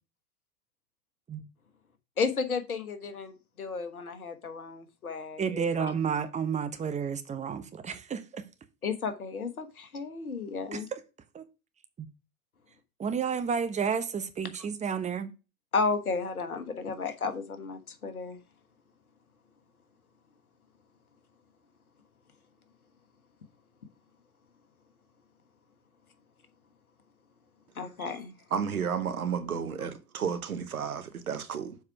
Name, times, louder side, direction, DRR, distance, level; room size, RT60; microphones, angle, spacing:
voice 1, 2.2-5.9 8.8-10.9 15.7-18.4 27.7-28.4, left 4 dB, 85° left, 1.4 m, -33 dB
voice 2, 5.4-8.4 10.7-11.0 11.3-11.4 12.0-12.1 13.0-15.3, right 6 dB, 15° right, 0.9 m, -31 dB
voice 3, 28.5-31.8, right 7 dB, 85° right, 1.1 m, -32 dB
7.0 x 4.8 x 4.7 m
figure-of-eight pair, 90°, 42 cm